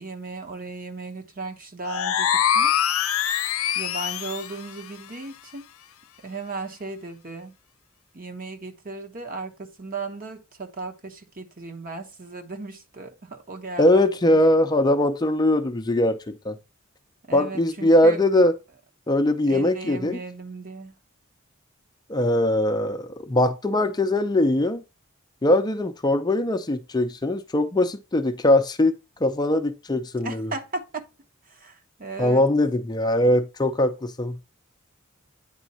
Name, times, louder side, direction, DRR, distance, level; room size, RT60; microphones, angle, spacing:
voice 1, 0.0-2.9 3.7-5.7 6.2-7.5 8.1-14.4 17.3-18.2 19.5-20.9 30.2-31.0 31.5-32.4, right 3 dB, 40° right, 1.0 m, -36 dB
sound 1, 1.9-4.6, left 9 dB, 85° left, 0.6 m, -23 dB
voice 2, 13.8-16.6 17.3-18.5 19.1-20.2 22.1-24.8 25.4-28.9 29.2-30.5 32.2-34.4, left 1 dB, 20° left, 0.5 m, -21 dB
9.1 x 3.7 x 4.2 m
head